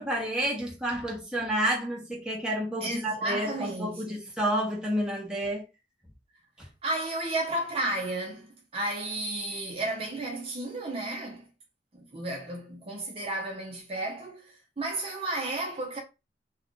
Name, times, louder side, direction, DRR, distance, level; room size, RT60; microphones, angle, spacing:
voice 1, 0.0-5.6 6.6-6.7, right 1 dB, 5° right, 0.9 m, -30 dB
voice 2, 2.8-4.2 6.8-11.4 11.9-16.0, right 1 dB, 35° right, 0.6 m, -33 dB
2.4 x 2.4 x 3.7 m
head